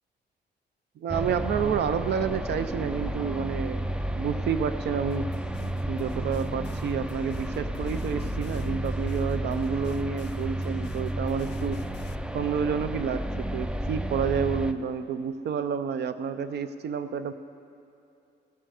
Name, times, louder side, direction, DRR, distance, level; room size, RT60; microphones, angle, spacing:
voice 1, 1.0-5.3 5.9-11.8 12.3-17.3, right 7 dB, 65° right, 11 dB, 0.5 m, -29 dB
sound 1, 1.1-14.7, right 1 dB, 5° right, 0.3 m, -32 dB
sound 2, 5.1-12.1, left 13 dB, 70° left, 0.4 m, -46 dB
16.0 x 7.8 x 4.9 m, 2.6 s
cardioid pair, 125°, 19 cm